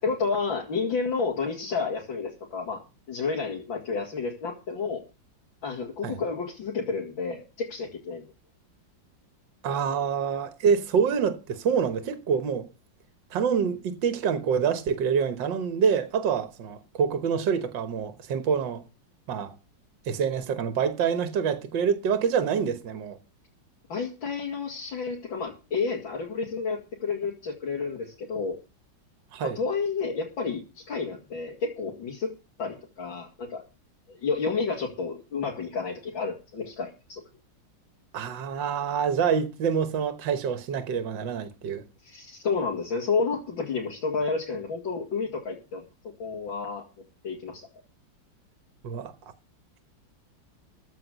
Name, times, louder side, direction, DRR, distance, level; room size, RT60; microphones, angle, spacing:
voice 1, 0.0-2.8 3.1-5.0 5.6-8.3 23.9-28.6 29.4-32.3 32.6-33.6 34.1-37.2 42.0-45.8 46.2-46.8 47.2-47.7, left 4 dB, 80° left, 3.0 m, -30 dB
voice 2, 9.6-12.7 13.3-18.8 19.3-19.5 20.1-23.2 29.3-29.6 38.1-41.8 48.8-49.1, right 7 dB, 70° right, 1.9 m, -26 dB
14.0 x 5.9 x 8.0 m
omnidirectional pair, 2.1 m